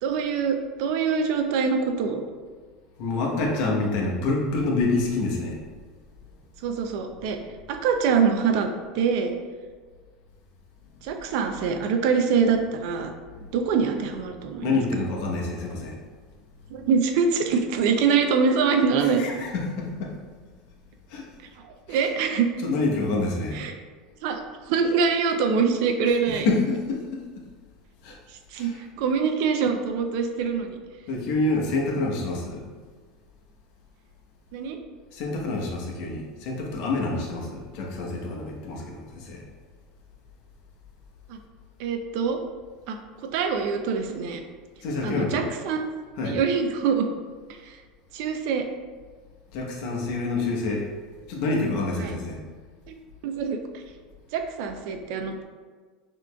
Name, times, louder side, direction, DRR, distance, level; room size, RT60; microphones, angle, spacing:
voice 1, 0.0-2.2 6.6-7.4 7.7-8.7 8.9-9.3 11.0-13.1 13.5-14.8 16.7-19.2 21.6-22.5 23.5-23.7 24.2-26.5 28.5-28.7 29.0-30.8 34.5-34.8 41.3-41.4 41.8-42.4 42.9-43.0 43.3-44.4 45.0-45.9 46.2-47.1 47.5-47.8 48.1-48.7 52.0-52.1 52.9-53.0 53.2-53.8 54.3-55.4, right 6 dB, 70° right, 5 dB, 0.5 m, -24 dB
voice 2, 3.0-5.6 13.3-13.4 14.6-16.0 19.2-20.1 21.1-21.2 21.9-22.0 22.6-23.6 26.4-27.2 28.0-28.2 28.5-28.7 31.1-32.6 35.1-39.4 44.8-45.5 46.2-46.4 49.5-50.9 51.3-52.4, left 3 dB, 65° left, -1 dB, 1.0 m, -27 dB
6.1 x 3.0 x 2.3 m, 1.5 s
supercardioid pair, 120°, 2 cm